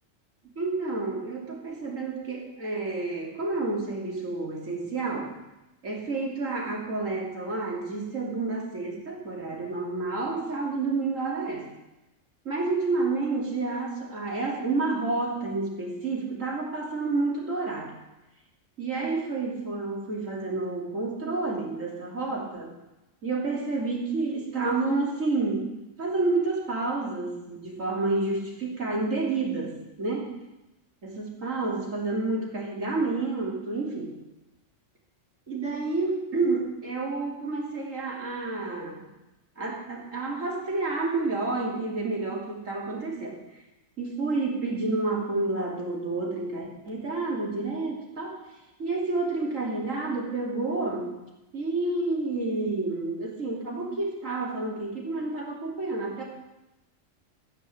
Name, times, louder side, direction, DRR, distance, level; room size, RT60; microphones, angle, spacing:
voice 1, 0.5-5.3 5.8-11.7 12.4-17.9 18.8-22.7 23.2-30.3 31.0-34.2 35.5-39.0 39.6-43.4 44.0-48.4 48.8-51.2 51.5-56.2, right 3 dB, 85° right, -2 dB, 3.4 m, -29 dB
13.0 x 9.6 x 7.8 m, 0.98 s
omnidirectional pair, 1.3 m